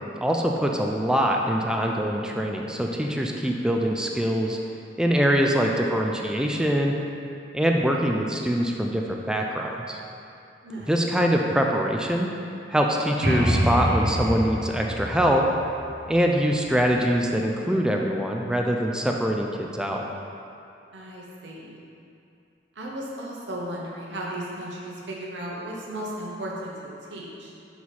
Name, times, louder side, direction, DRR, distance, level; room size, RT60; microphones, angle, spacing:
voice 1, 0.2-4.6 5.0-6.9 7.5-10.0 10.9-12.3 12.7-15.4 16.1-20.0, equal, 5° right, 1 dB, 0.3 m, -23 dB
voice 2, 10.6-11.0 20.9-21.8 22.7-27.5, right 1 dB, 75° right, -4 dB, 1.1 m, -35 dB
sound 1, 13.2-16.9, equal, 60° right, 1.3 m, -26 dB
5.4 x 4.7 x 4.2 m, 2.6 s
head